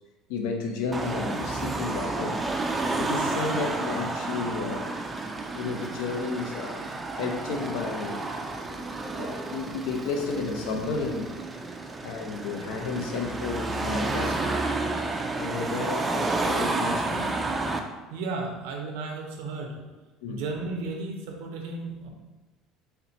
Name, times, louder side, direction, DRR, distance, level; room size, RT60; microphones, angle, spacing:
voice 1, 0.3-4.9 5.5-6.9 7.1-8.2 9.2-11.3 12.0-14.6 15.4-17.3 20.2-20.4, left 4 dB, 85° left, 3 dB, 0.6 m, -32 dB
Car passing by / Traffic noise roadway noise / Engine, 0.9-17.8, right 2 dB, 15° right, 0.3 m, -31 dB
voice 2, 18.1-19.8 20.3-22.1, right 3 dB, 85° right, 2 dB, 0.7 m, -34 dB
4.2 x 2.2 x 4.0 m, 1.2 s
cardioid pair, 125°, 0 cm